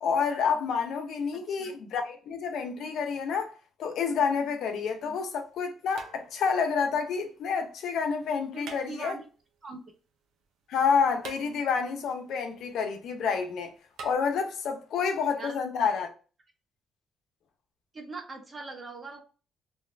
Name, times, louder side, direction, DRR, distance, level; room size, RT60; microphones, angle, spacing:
voice 1, 0.0-3.5 3.8-9.1 10.7-13.7 14.0-16.1, left 6 dB, 75° left, 0.6 m, -29 dB
voice 2, 1.3-1.7 5.0-5.2 8.5-9.3 9.6-9.8 15.3-15.6 17.9-19.2, right 3 dB, 35° right, 1.0 m, -42 dB
sound 1, 4.6-4.7 5.9-6.7 8.6-9.4 11.2-12.0 14.0-14.2, right 5 dB, 85° right, 0.6 m, -45 dB
2.9 x 2.3 x 3.3 m
cardioid pair, 90°, 0 cm